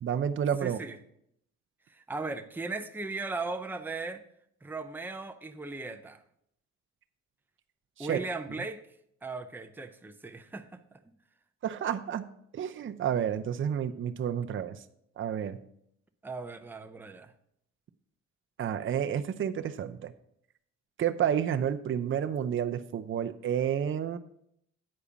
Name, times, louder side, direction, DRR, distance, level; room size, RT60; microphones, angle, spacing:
voice 1, 0.0-0.8 8.0-8.2 11.6-12.3 12.5-14.8 15.2-15.6 18.6-20.1 21.0-24.2, right 9 dB, 40° right, 8 dB, 0.6 m, -30 dB
voice 2, 0.6-1.0 1.9-4.2 4.6-6.2 8.0-8.8 9.2-10.8 16.2-17.3, right 3 dB, 5° right, 7 dB, 0.7 m, -37 dB
8.6 x 4.9 x 7.0 m, 0.73 s
cardioid pair, 90°, 30 cm